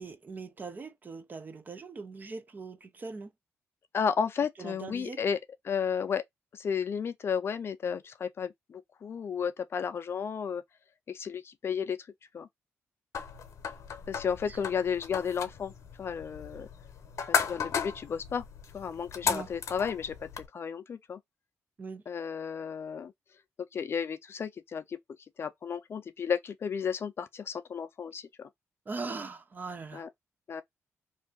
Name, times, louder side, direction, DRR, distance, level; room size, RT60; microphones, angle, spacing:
voice 1, 0.0-3.3 4.6-5.2 14.5-14.6 19.2-19.5 21.8-22.0 28.9-30.1, right 4 dB, 35° right, 0.5 m, -40 dB
voice 2, 3.9-5.4 5.6-6.2 6.5-10.6 11.1-12.0 12.3-12.5 14.1-15.7 16.0-16.7 17.4-18.4 18.7-21.2 22.1-23.1 23.7-25.0 25.4-28.5 29.9-30.1 30.5-30.6, left 7 dB, 50° left, 0.5 m, -33 dB
sound 1, 13.1-20.5, left 6 dB, 70° left, 0.8 m, -35 dB
2.7 x 2.5 x 3.6 m
cardioid pair, 100°, 5 cm